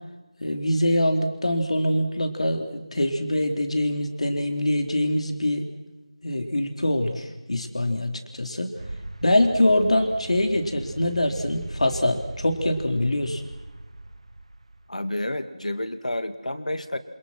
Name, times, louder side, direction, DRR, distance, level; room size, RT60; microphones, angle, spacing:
voice 1, 0.4-5.7 6.2-8.8 9.2-13.4, left 1 dB, 65° left, 4 dB, 4.1 m, -24 dB
sound 1, 8.8-15.2, right 1 dB, 60° right, 2.2 m, -39 dB
voice 2, 14.9-17.0, left 1 dB, 85° left, 9 dB, 2.5 m, -30 dB
28.0 x 28.0 x 6.2 m, 1.1 s
figure-of-eight pair, 170°, 4 cm